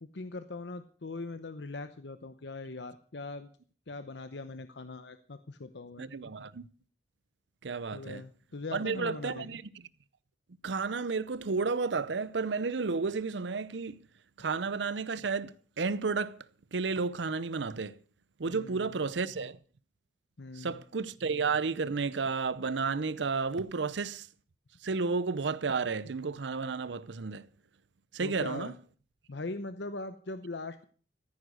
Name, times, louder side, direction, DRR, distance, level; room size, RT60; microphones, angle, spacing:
voice 1, 0.0-3.5 3.9-6.1 7.9-9.5 18.5-18.9 20.4-20.8 28.2-28.7 29.3-30.8, left 3 dB, 70° left, 0.8 m, -41 dB
voice 2, 6.0-6.6 7.6-8.2 8.7-9.6 10.6-14.0 14.4-16.4 16.7-18.0 18.4-19.6 20.6-24.3 24.8-27.4 28.1-28.7, right 4 dB, 80° right, 0.7 m, -32 dB
14.5 x 9.7 x 6.3 m
head